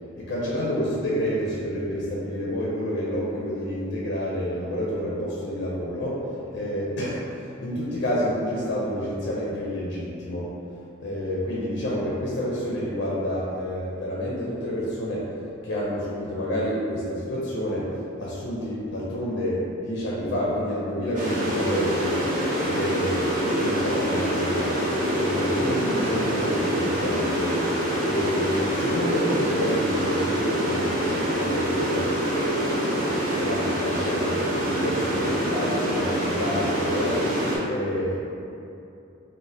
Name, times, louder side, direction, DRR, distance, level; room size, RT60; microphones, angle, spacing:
voice 1, 0.2-6.2 6.5-7.2 7.6-10.5 11.0-15.3 15.6-24.8 25.1-27.6 27.9-32.1 33.4-37.2 37.7-38.2, equal, 60° left, -6 dB, 0.4 m, -29 dB
sound 1, 21.2-37.6, equal, 40° right, 0.6 m, -25 dB
2.6 x 2.1 x 3.2 m, 2.7 s
head